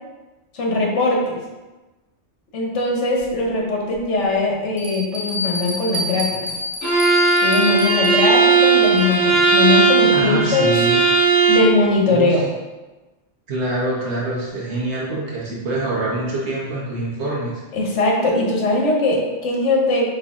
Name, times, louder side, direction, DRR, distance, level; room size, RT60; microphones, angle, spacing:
voice 1, 0.5-1.4 2.5-6.5 7.4-10.9 11.5-12.4 17.7-20.1, left 2 dB, 75° left, -1 dB, 1.2 m, -20 dB
Bell, 3.2-3.3 3.9-4.0 4.8-9.3, left 1 dB, 25° right, 0.9 m, -29 dB
Bowed string instrument, 6.8-11.8, right 4 dB, 15° left, 1.2 m, -16 dB
voice 2, 10.1-11.0 12.1-12.4 13.5-17.6, right 2 dB, 65° right, -6 dB, 1.3 m, -25 dB
4.1 x 3.1 x 3.6 m, 1.2 s
omnidirectional pair, 1.2 m